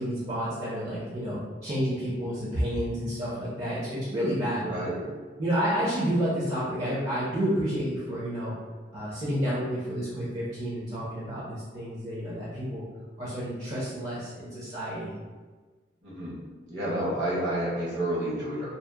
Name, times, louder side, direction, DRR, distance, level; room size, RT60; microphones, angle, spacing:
voice 1, 0.0-4.8 5.4-8.5 8.9-12.8 13.2-15.1, equal, 35° right, -8 dB, 0.6 m, -30 dB
voice 2, 4.6-5.1 16.0-16.4 16.7-18.8, right 1 dB, 70° right, -7 dB, 1.0 m, -30 dB
2.8 x 2.0 x 2.2 m, 1.4 s
head